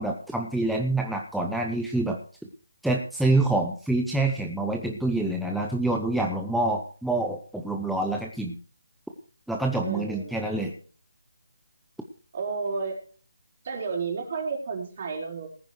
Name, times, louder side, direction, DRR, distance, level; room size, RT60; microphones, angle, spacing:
voice 1, 0.0-2.2 2.8-8.5 9.5-10.7, right 2 dB, ahead, 0 dB, 0.7 m, -26 dB
voice 2, 9.8-10.7 12.3-13.0 13.6-15.5, right 4 dB, 40° right, 0 dB, 4.4 m, -32 dB
19.0 x 9.5 x 3.2 m, 0.41 s
figure-of-eight pair, 165°, 0 cm